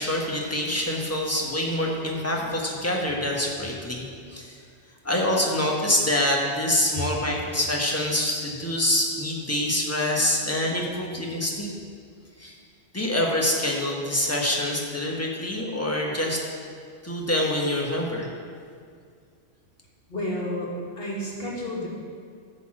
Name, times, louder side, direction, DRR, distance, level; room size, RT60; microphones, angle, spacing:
voice 1, 0.0-4.6 5.0-11.7 12.4-12.6 12.9-16.4 17.0-18.3, left 1 dB, 15° left, -2 dB, 1.2 m, -26 dB
voice 2, 20.1-21.9, equal, 50° left, -4 dB, 2.1 m, -31 dB
10.5 x 4.1 x 7.5 m, 2.2 s
omnidirectional pair, 1.2 m